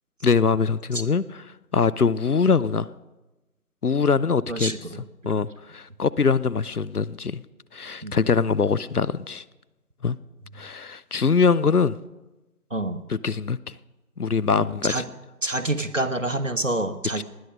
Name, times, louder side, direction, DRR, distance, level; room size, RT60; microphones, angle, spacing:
voice 1, 0.2-1.4 1.7-2.9 3.8-4.7 5.2-7.4 7.7-9.4 10.0-10.2 10.6-12.0 13.1-13.7 14.2-15.0 17.2-17.3, left 5 dB, 70° left, 0.7 m, -23 dB
voice 2, 4.5-5.0 8.0-8.2 12.7-13.0 14.5-15.1 15.4-17.2, right 2 dB, 55° right, 1.3 m, -27 dB
19.5 x 12.0 x 5.1 m
figure-of-eight pair, 180°, 46 cm